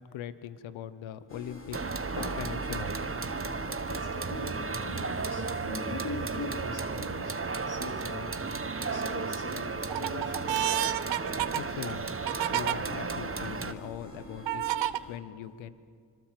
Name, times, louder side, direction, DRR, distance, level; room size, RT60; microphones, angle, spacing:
voice 1, 0.0-1.8 2.4-2.9 11.5-12.1 12.5-14.6 15.1-15.8, left 10 dB, 90° left, 14 dB, 1.0 m, -40 dB
sound 1, 1.3-15.2, left 2 dB, 25° left, 4.3 m, -49 dB
sound 2, 1.7-13.7, right 4 dB, 30° right, 1.4 m, -34 dB
voice 2, 2.2-2.5 3.8-7.4 7.7-8.4 8.8-10.5, left 3 dB, 55° left, 2 dB, 4.0 m, -41 dB
sound 3, 6.3-6.6 7.2-7.9 8.4-9.0 9.5-12.8 13.4-13.5 14.5-15.0, right 12 dB, 70° right, 0.9 m, -31 dB
26.0 x 21.5 x 7.6 m, 2.1 s
supercardioid pair, 45°, 45 cm